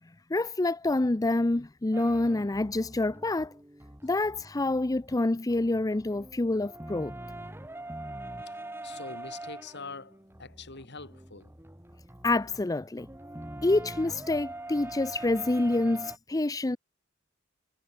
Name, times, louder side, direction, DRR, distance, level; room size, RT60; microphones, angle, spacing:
voice 1, 0.3-3.5 4.0-7.2 12.2-13.1 13.6-16.8, left 2 dB, 15° left, 0.5 m, -27 dB
sound 1, 1.9-5.2 5.5-16.2, right 1 dB, 10° right, 2.3 m, -43 dB
voice 2, 8.4-11.5, left 4 dB, 55° left, 6.7 m, -44 dB
head